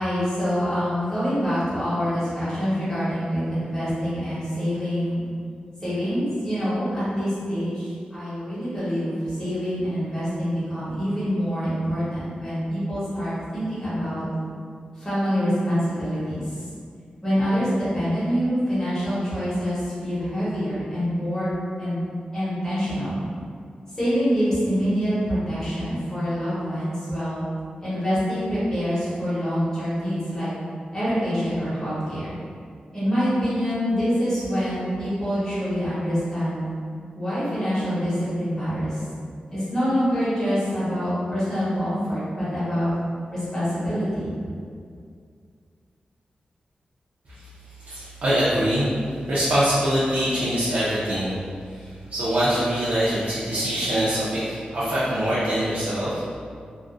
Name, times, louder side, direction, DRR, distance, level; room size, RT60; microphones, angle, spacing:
voice 1, 0.0-5.2 5.8-14.2 15.0-16.4 17.2-21.5 21.8-22.0 22.3-23.2 24.0-27.4 27.8-30.5 30.9-32.3 32.9-36.6 37.2-39.0 39.5-42.9 43.3-44.3, equal, 20° left, -12 dB, 1.0 m, -25 dB
voice 2, 47.3-56.3, equal, 65° right, -11 dB, 0.5 m, -24 dB
2.5 x 2.0 x 2.4 m, 2.2 s
wide cardioid pair, 160°, 3 cm